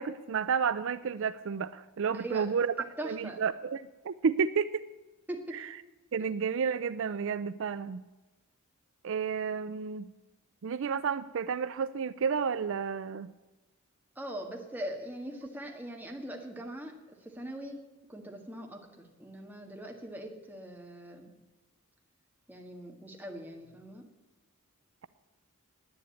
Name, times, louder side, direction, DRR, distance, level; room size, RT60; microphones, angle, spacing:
voice 1, 0.0-2.7 3.0-4.8 5.5-5.7 6.1-8.0 9.0-10.1 10.6-13.3, right 6 dB, 65° right, 14 dB, 0.4 m, -31 dB
voice 2, 2.1-2.5 3.0-3.4 5.3-5.6 14.2-16.9 17.2-17.8 18.1-21.3 22.5-24.1, right 1 dB, 10° right, 1 dB, 1.9 m, -41 dB
10.5 x 9.5 x 8.5 m, 1.1 s
head